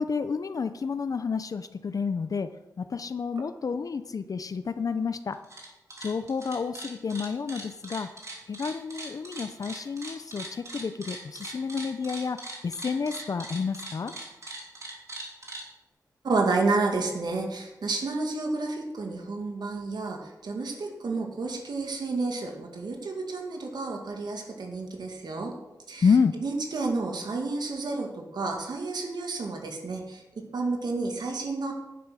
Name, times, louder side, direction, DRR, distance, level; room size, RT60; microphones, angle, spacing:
voice 1, 0.0-2.5 2.8-5.4 6.0-8.1 8.5-12.4 12.6-14.1 26.0-26.3, left 5 dB, 55° left, 11 dB, 0.6 m, -29 dB
sound 1, 5.3-5.7 5.9-15.6, right 2 dB, 45° right, 3.1 m, -40 dB
voice 2, 16.2-25.5 25.9-26.1 26.4-30.2 30.5-31.7, right 3 dB, 75° right, 2 dB, 2.2 m, -30 dB
10.5 x 10.0 x 6.3 m, 0.98 s
wide cardioid pair, 130°, 7 cm